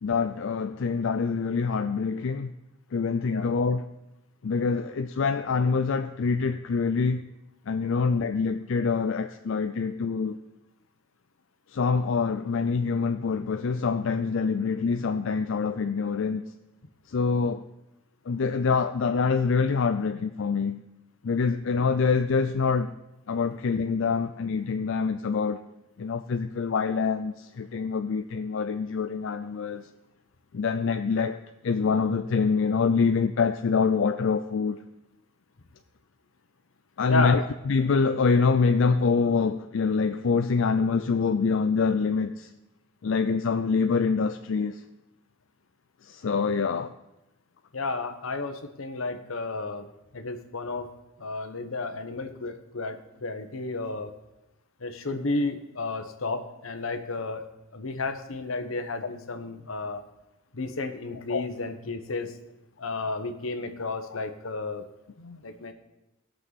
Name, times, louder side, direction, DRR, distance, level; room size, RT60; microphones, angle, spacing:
voice 1, 0.0-2.5 2.9-3.9 4.4-7.3 7.7-10.4 11.7-16.4 17.1-17.7 18.3-20.8 21.2-22.9 23.3-25.6 26.0-29.9 30.5-34.8 37.0-42.5 43.0-44.8 46.0-46.9 61.3-61.5 63.9-64.0, left 5 dB, 65° left, 0.4 m, -25 dB
voice 2, 37.1-37.5 47.7-49.9 50.1-50.9 51.2-54.1 54.8-57.4 57.7-60.0 60.5-62.3 62.8-64.8 65.2-65.7, left 3 dB, 85° left, 1.1 m, -32 dB
19.5 x 6.5 x 4.1 m
head